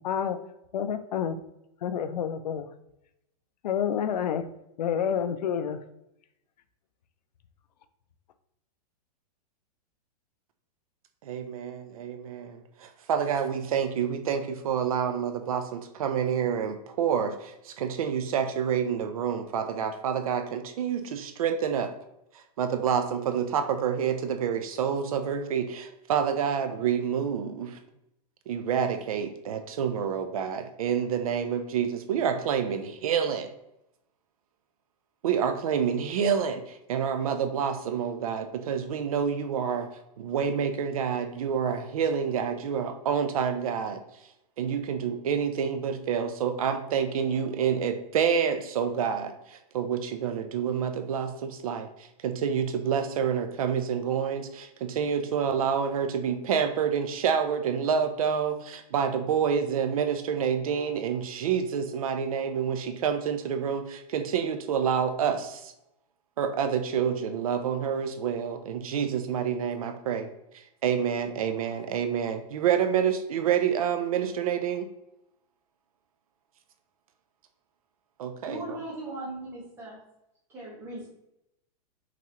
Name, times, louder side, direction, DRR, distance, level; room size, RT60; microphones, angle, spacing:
voice 1, 0.0-0.4 0.7-1.4 1.8-2.7 3.6-4.4 4.8-5.8, left 8 dB, 85° left, 10 dB, 0.6 m, -28 dB
voice 2, 11.2-21.9 22.6-27.8 28.5-33.5 35.2-39.9 40.2-44.0 44.6-51.9 52.2-65.7 66.4-70.3 70.8-74.9 78.2-78.8, right 7 dB, 60° right, 8 dB, 0.6 m, -28 dB
voice 3, 78.4-80.0 80.5-81.1, right 1 dB, 10° right, -5 dB, 1.3 m, -38 dB
5.8 x 3.0 x 3.0 m, 0.82 s
supercardioid pair, 175°, 21 cm